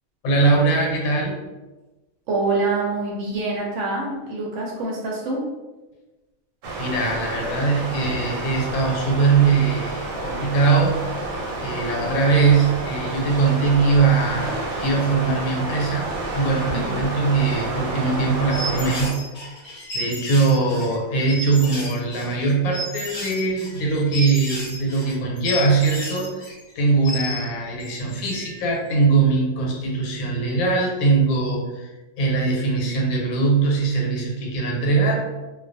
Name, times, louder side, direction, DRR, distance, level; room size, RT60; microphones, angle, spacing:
voice 1, 0.2-1.4 6.8-11.3 11.6-16.1 16.3-19.2 19.9-31.9 32.2-35.4, right 4 dB, 85° left, -1 dB, 1.1 m, -21 dB
voice 2, 2.3-5.4 16.7-17.0, right 3 dB, 65° right, -2 dB, 0.8 m, -25 dB
sound 1, 6.6-19.1, right 2 dB, 85° right, 1.1 m, -30 dB
sound 2, 18.5-27.5 27.8-28.6, left 1 dB, 45° left, 0.7 m, -33 dB
2.3 x 2.2 x 2.5 m, 1.2 s
omnidirectional pair, 1.5 m